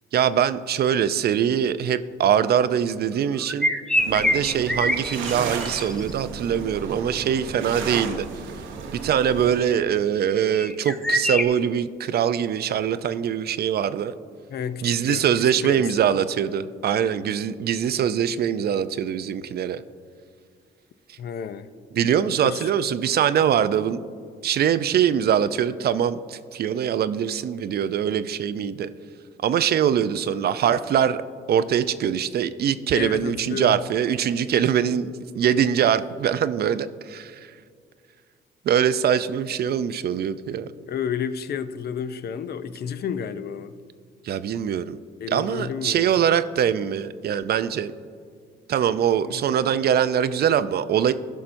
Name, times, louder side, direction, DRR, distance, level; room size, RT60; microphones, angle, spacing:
voice 1, 0.1-3.7 4.1-8.3 8.9-14.1 14.8-19.8 21.9-24.0 24.4-28.9 29.4-31.2 31.5-37.4 38.7-40.7 44.2-45.0 45.3-47.9 48.7-51.1, right 9 dB, 55° right, 13 dB, 0.4 m, -23 dB
sound 1, 3.4-6.1 10.3-11.5, equal, 5° left, 0.5 m, -24 dB
sound 2, 4.0-9.6, right 5 dB, 75° right, 0.8 m, -34 dB
voice 2, 14.5-15.2 15.6-15.8 21.2-21.7 22.4-22.7 32.9-33.8 40.5-40.6 40.9-43.7 45.2-46.2 49.2-49.4, left 7 dB, 55° left, 13 dB, 0.5 m, -31 dB
16.0 x 5.7 x 2.6 m, 2.1 s
cardioid pair, 90°, 20 cm